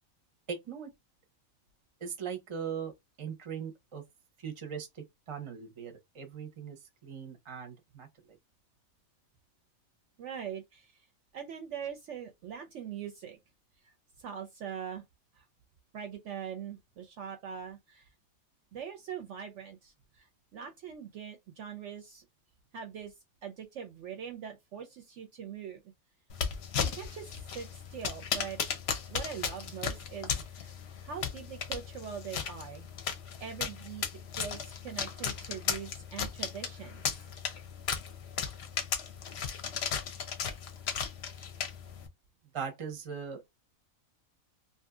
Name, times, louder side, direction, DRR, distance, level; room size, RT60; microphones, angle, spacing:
voice 1, 0.5-0.9 2.0-2.9 3.2-4.0 4.4-8.1 42.5-43.4, right 7 dB, 30° right, 0.6 m, -40 dB
voice 2, 10.2-11.1 11.3-13.4 13.8-15.0 15.3-15.4 15.9-18.1 18.7-22.3 22.7-23.1 23.4-25.8 26.8-28.6 29.1-30.7 31.0-32.9 33.4-34.1 34.3-37.3, right 8 dB, 65° right, 0.8 m, -42 dB
sound 1, 26.3-42.1, left 7 dB, 60° left, 0.7 m, -36 dB
2.7 x 2.6 x 2.3 m
omnidirectional pair, 1.5 m